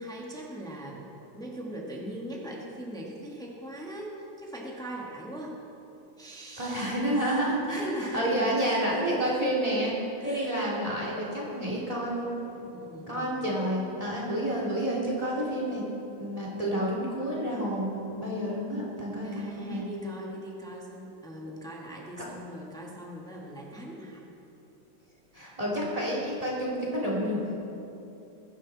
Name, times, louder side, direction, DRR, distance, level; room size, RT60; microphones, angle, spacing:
voice 1, 0.0-5.6 6.2-9.2 10.2-10.6 12.6-13.5 19.2-24.2, right 1 dB, ahead, -3 dB, 1.6 m, -40 dB
voice 2, 6.6-9.9 10.2-12.3 13.1-15.8 16.2-19.3 19.6-19.8 25.3-27.4, right 1 dB, 15° right, -5 dB, 3.2 m, -29 dB
22.0 x 10.5 x 4.2 m, 2.9 s
omnidirectional pair, 2.3 m